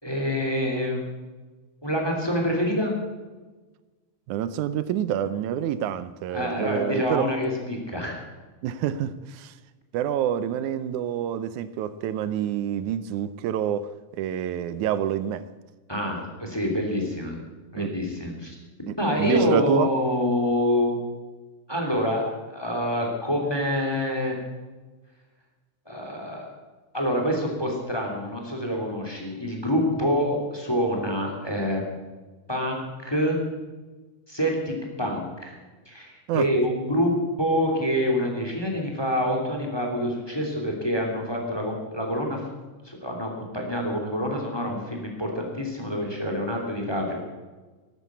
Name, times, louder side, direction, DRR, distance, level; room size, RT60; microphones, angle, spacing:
voice 1, 0.0-1.0 1.8-2.9 6.3-8.2 15.9-17.4 17.7-18.5 19.0-21.0 21.7-24.4 25.8-26.5 26.9-31.8 32.5-33.4 34.3-35.5 35.9-42.4 42.8-47.2, equal, 10° left, 2.8 m, -26 dB
voice 2, 4.3-7.3 8.6-9.5 9.9-15.5 17.8-17.9 18.9-19.9 36.3-36.5, right 10 dB, 85° right, 2.1 m, -27 dB
13.5 x 11.5 x 8.2 m
omnidirectional pair, 3.4 m